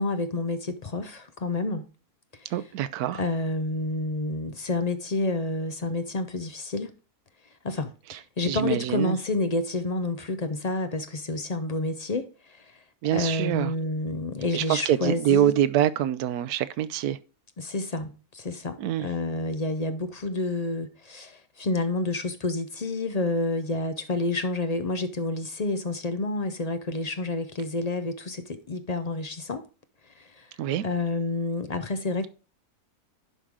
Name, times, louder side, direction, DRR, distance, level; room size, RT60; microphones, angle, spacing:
voice 1, 0.0-1.9 2.4-2.5 3.2-6.9 7.6-12.8 13.1-15.5 17.6-29.6 30.2-30.5 30.8-32.3, left 2 dB, 45° left, 0.5 m, -29 dB
voice 2, 2.5-3.2 8.1-8.2 8.4-9.2 13.0-13.7 14.5-17.2 18.8-19.1 30.6-30.8, right 11 dB, 85° right, 1.1 m, -25 dB
10.5 x 3.8 x 4.7 m
omnidirectional pair, 1.6 m